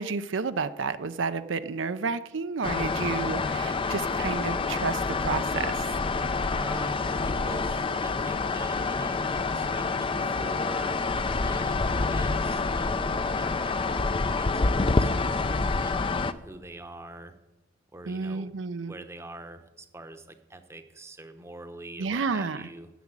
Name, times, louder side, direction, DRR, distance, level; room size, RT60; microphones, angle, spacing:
voice 1, 0.0-5.9 18.1-18.9 22.0-22.6, right 4 dB, 70° right, 11 dB, 0.6 m, -31 dB
Birmingham-erdington-canal-hotel-extractor-fan, 2.6-16.3, left 3 dB, 25° left, 0.5 m, -27 dB
voice 2, 6.5-11.0 11.5-17.4 17.9-18.5 18.8-22.9, right 2 dB, 15° right, 8 dB, 0.8 m, -44 dB
10.0 x 7.1 x 8.9 m, 1.0 s
head